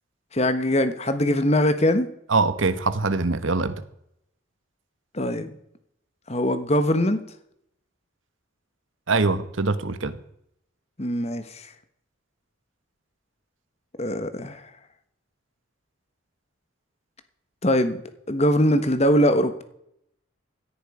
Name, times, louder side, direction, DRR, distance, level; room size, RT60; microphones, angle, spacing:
voice 1, 0.3-2.1 5.1-5.6 6.3-7.2 11.0-11.7 14.0-14.6 17.6-18.0 18.3-19.6, equal, 30° left, 1.3 m, -22 dB
voice 2, 2.3-3.8 9.1-10.2, right 3 dB, 70° right, 1.2 m, -23 dB
17.0 x 10.5 x 5.0 m
head